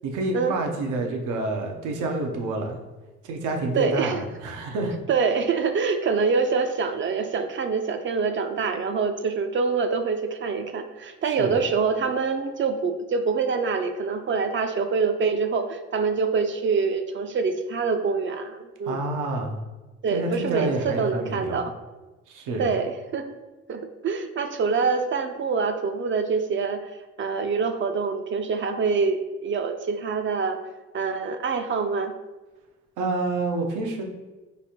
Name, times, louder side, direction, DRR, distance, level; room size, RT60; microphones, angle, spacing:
voice 1, 0.0-2.8 3.2-5.0 11.2-11.6 18.9-19.6 20.1-21.6 22.3-22.7 33.0-34.0, right 2 dB, 85° right, 2 dB, 0.7 m, -28 dB
voice 2, 3.7-4.2 5.1-19.0 20.0-21.7 22.6-23.4 23.7-26.9 27.2-30.6 30.9-32.1, right 5 dB, 40° right, 7 dB, 0.4 m, -25 dB
3.2 x 2.5 x 4.2 m, 1.2 s
cardioid pair, 90°, 30 cm